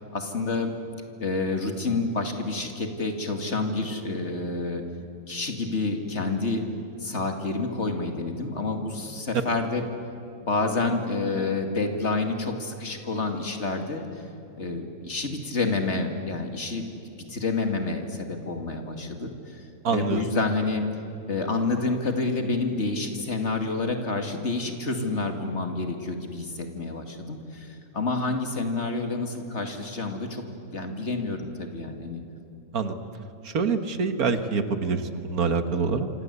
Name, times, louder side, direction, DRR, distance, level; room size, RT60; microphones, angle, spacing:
voice 1, 0.1-0.7 1.2-4.8 5.3-6.6 7.0-9.8 10.4-14.2 14.6-16.8 17.3-19.6 19.9-20.9 21.2-30.4 30.7-32.2, left 3 dB, 50° left, 5 dB, 2.6 m, -28 dB
voice 2, 19.8-20.2 32.7-33.0 33.4-36.1, right 5 dB, 85° right, 8 dB, 2.0 m, -25 dB
27.5 x 26.0 x 8.3 m, 2.7 s
omnidirectional pair, 1.5 m